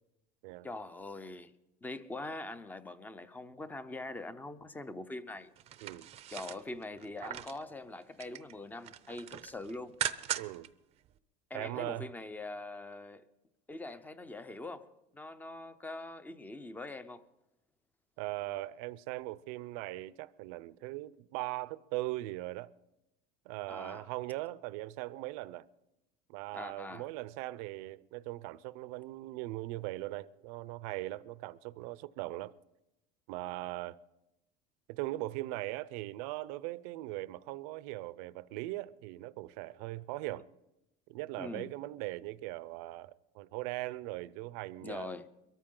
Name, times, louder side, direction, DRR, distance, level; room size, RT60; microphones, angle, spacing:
voice 1, 0.6-1.5 1.8-5.5 6.3-10.0 11.5-13.2 13.7-17.2 23.7-24.1 26.5-27.1 41.4-41.7 44.8-45.3, left 2 dB, 10° left, 0.6 m, -43 dB
sound 1, 5.6-7.6 8.0-8.5 8.8-10.7 11.0-11.1, right 11 dB, 30° right, 0.6 m, -39 dB
voice 2, 10.4-10.7 11.5-12.1 18.2-22.7 23.4-25.7 26.3-32.5 33.3-34.0 34.9-40.5 41.1-45.1, right 18 dB, 80° right, 0.6 m, -40 dB
22.5 x 13.5 x 3.8 m
cardioid pair, 155°, 19 cm